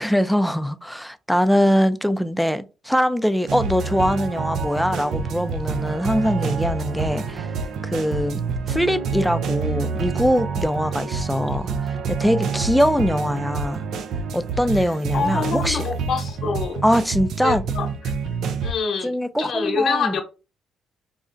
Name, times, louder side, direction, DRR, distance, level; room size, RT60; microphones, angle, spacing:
voice 1, 0.0-7.5 7.8-8.4 8.7-11.7 12.1-13.8 14.3-15.8 16.8-17.6 19.0-20.1, equal, ahead, 0.3 m, -22 dB
sound 1, 3.5-18.7, right 5 dB, 75° right, 0.4 m, -27 dB
voice 2, 14.8-16.8 17.4-18.1 18.6-20.2, left 5 dB, 75° left, 0.9 m, -26 dB
3.7 x 2.1 x 2.5 m
cardioid pair, 90°, 0 cm